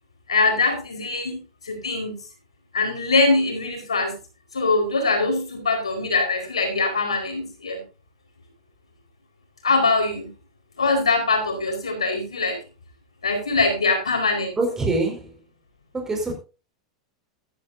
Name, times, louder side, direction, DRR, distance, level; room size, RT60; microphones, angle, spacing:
voice 1, 0.3-2.2 2.7-4.2 4.5-7.8 9.6-10.3 10.8-12.6 13.2-14.6, left 3 dB, 80° left, 4.5 m, -22 dB
voice 2, 14.6-15.4 15.9-16.3, right 2 dB, 15° right, 5.1 m, -24 dB
14.0 x 13.0 x 2.7 m
figure-of-eight pair, 90°, 3 cm